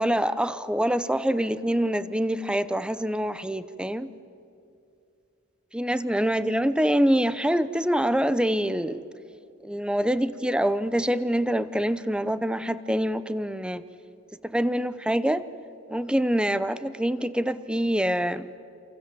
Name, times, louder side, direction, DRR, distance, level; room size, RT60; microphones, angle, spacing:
voice 1, 0.0-4.1 5.7-9.0 9.6-13.8 14.5-15.4 15.9-18.5, equal, 5° right, 14 dB, 0.8 m, -25 dB
28.0 x 27.5 x 7.7 m, 2.5 s
head